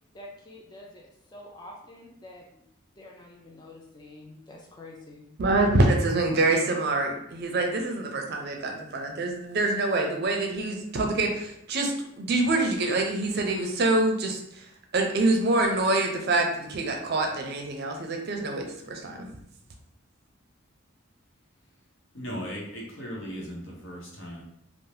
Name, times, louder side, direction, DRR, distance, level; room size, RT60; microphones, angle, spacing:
voice 1, 0.1-2.6 3.0-5.3, left 1 dB, 20° left, -1 dB, 0.3 m, -47 dB
voice 2, 5.4-14.4 14.9-19.3, right 2 dB, 50° right, 3 dB, 0.5 m, -25 dB
voice 3, 22.1-24.4, equal, 70° left, -2 dB, 0.8 m, -37 dB
2.7 x 2.0 x 3.2 m, 0.75 s
head